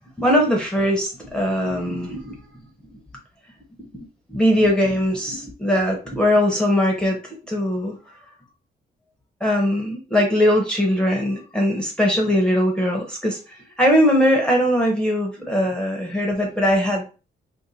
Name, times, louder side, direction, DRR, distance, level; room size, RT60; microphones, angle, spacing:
voice 1, 0.2-2.4 2.9-3.0 3.8-3.9 4.3-8.0 9.4-17.1, equal, 5° left, 0 dB, 0.8 m, -20 dB
2.6 x 2.5 x 4.0 m, 0.33 s
cardioid pair, 75°, 21 cm